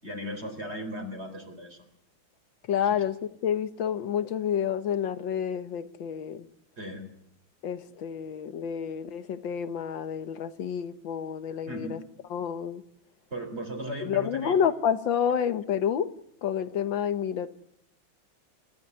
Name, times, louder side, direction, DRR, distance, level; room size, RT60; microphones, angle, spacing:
voice 1, 0.0-1.9 2.9-3.0 6.8-7.1 11.7-11.9 13.3-14.5, equal, 30° right, 4.6 m, -37 dB
voice 2, 2.7-3.2 3.4-6.5 7.6-12.0 12.3-12.8 14.0-16.1 16.4-17.5, left 8 dB, 65° left, 1.9 m, -29 dB
29.0 x 15.0 x 9.8 m
omnidirectional pair, 2.4 m